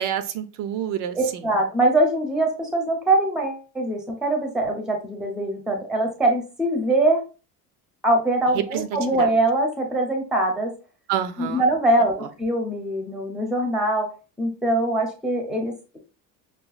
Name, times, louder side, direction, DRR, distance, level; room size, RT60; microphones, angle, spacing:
voice 1, 0.0-1.4 8.5-9.3 11.1-11.6, right 10 dB, 65° right, 10 dB, 0.5 m, -28 dB
voice 2, 1.1-7.2 8.0-10.7 11.4-14.1 14.4-16.0, right 1 dB, ahead, 2 dB, 0.6 m, -23 dB
5.7 x 2.3 x 2.3 m, 0.33 s
cardioid pair, 175°, 34 cm